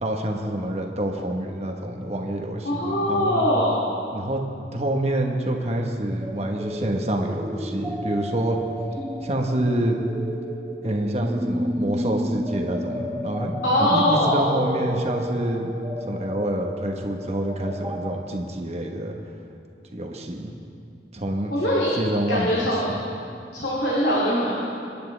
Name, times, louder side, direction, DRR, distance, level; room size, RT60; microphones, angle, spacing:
voice 1, 0.0-3.5 4.1-4.4 4.7-8.6 9.2-10.0 10.8-13.5 13.8-15.7 16.1-19.2 19.9-20.5 21.1-21.5 22.0-23.0, right 1 dB, 40° right, 2 dB, 1.2 m, -27 dB
voice 2, 2.6-3.8 13.6-14.4 21.5-21.9 22.3-22.9 23.5-24.5, equal, 70° left, -6 dB, 2.7 m, -22 dB
sound 1, 6.2-18.1, equal, 15° right, 0.9 m, -32 dB
27.0 x 10.5 x 3.4 m, 2.5 s
head